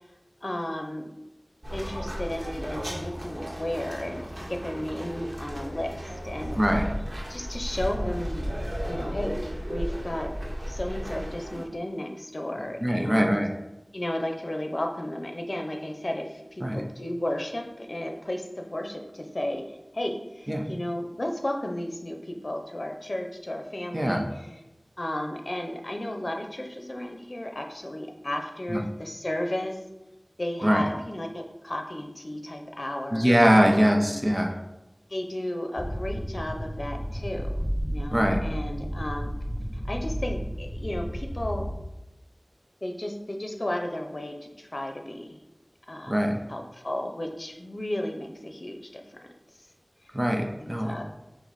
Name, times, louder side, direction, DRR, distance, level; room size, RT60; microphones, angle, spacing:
voice 1, 0.4-1.1 1.7-6.6 7.3-8.5 8.8-9.4 9.7-10.3 10.7-13.4 13.9-24.2 25.0-29.8 30.4-34.2 35.1-39.3 39.8-41.7 42.8-45.4 45.9-46.2 46.5-49.0 50.6-51.0, left 1 dB, 65° left, 3 dB, 0.6 m, -33 dB
sound 1, 1.6-11.6, equal, 70° right, 0.9 m, -34 dB
voice 2, 6.5-6.9 12.8-13.5 16.6-16.8 20.5-20.6 23.9-24.2 28.7-28.8 30.6-30.9 33.1-34.6 38.1-38.4 46.1-46.4 50.1-51.0, equal, 25° right, 2 dB, 0.7 m, -22 dB
sound 2, 35.8-41.7, equal, 5° right, 1.5 m, -32 dB
5.8 x 2.1 x 4.0 m, 0.96 s
wide cardioid pair, 40°, 0 cm